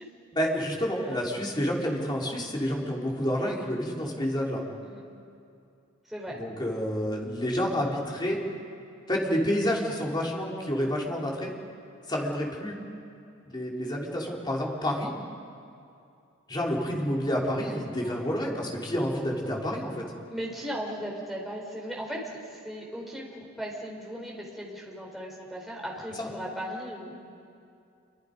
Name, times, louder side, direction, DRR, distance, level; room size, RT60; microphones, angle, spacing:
voice 1, 0.3-4.6 6.4-8.4 9.1-11.5 12.1-12.8 13.5-15.1 16.5-20.0 26.2-26.3, equal, 20° left, -2 dB, 3.4 m, -29 dB
voice 2, 6.1-6.4 17.6-18.5 20.3-27.1, equal, ahead, -3 dB, 4.2 m, -37 dB
28.0 x 23.5 x 5.2 m, 2.5 s
head